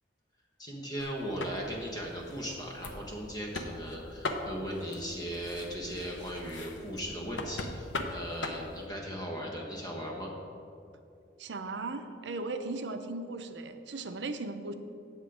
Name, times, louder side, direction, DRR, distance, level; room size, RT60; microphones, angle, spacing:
voice 1, 0.6-10.3, equal, 20° left, -1 dB, 1.1 m, -38 dB
sound 1, 1.0-8.9, left 2 dB, 80° left, 0.8 m, -41 dB
voice 2, 11.4-14.7, right 3 dB, 70° right, 8 dB, 0.6 m, -37 dB
8.1 x 7.3 x 5.0 m, 2.6 s
head